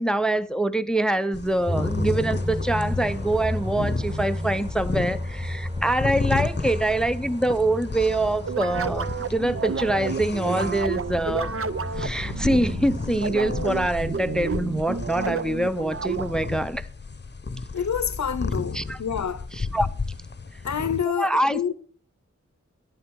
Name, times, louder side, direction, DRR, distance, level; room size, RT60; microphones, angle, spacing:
voice 1, 0.0-11.5 12.0-16.9 18.7-19.0 19.5-19.9 21.2-21.7, right 1 dB, ahead, 0.5 m, -25 dB
sound 1, 1.3-21.0, left 4 dB, 35° left, 0.8 m, -33 dB
sound 2, 1.7-13.1, left 1 dB, 20° right, 2.0 m, -33 dB
sound 3, 8.4-16.6, right 5 dB, 45° right, 0.6 m, -30 dB
voice 2, 17.7-19.5 20.6-21.7, left 7 dB, 65° left, 0.7 m, -28 dB
10.5 x 10.0 x 4.6 m
wide cardioid pair, 45°, 30 cm